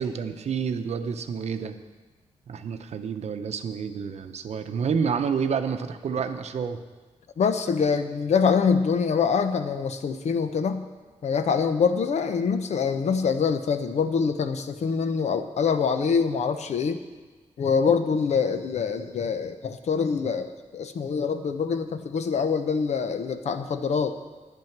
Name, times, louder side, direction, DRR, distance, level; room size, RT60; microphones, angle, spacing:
voice 1, 0.0-1.8 2.5-6.8, right 6 dB, 65° right, 8 dB, 0.7 m, -29 dB
voice 2, 7.4-10.8 11.2-17.0 17.6-24.2, left 6 dB, 70° left, 9 dB, 0.8 m, -25 dB
11.0 x 9.2 x 5.9 m, 1.3 s
wide cardioid pair, 140°, 12 cm